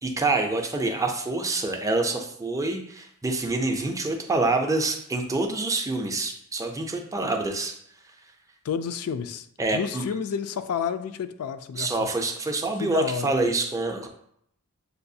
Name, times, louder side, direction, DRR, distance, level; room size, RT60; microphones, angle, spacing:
voice 1, 0.0-7.8 9.6-10.1 11.8-14.1, right 2 dB, 15° right, 3 dB, 0.4 m, -26 dB
voice 2, 8.6-9.5 9.7-11.9 12.8-13.3, left 7 dB, 70° left, 10 dB, 0.3 m, -30 dB
6.7 x 2.3 x 2.7 m, 0.71 s
head